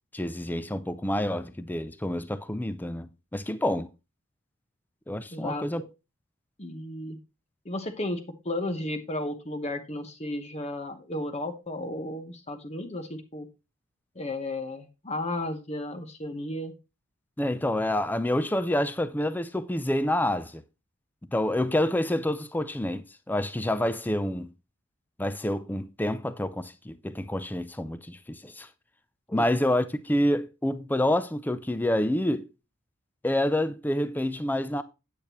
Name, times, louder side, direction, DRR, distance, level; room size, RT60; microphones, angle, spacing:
voice 1, 0.1-3.9 5.1-5.8 17.4-20.6 21.3-24.5 25.2-28.7 29.3-32.5 33.2-34.8, left 1 dB, 10° left, 0.4 m, -28 dB
voice 2, 5.3-5.8 6.6-7.2 7.6-13.5 14.1-16.7 29.4-29.5, left 1 dB, 30° left, 1.0 m, -34 dB
8.5 x 8.5 x 3.0 m
head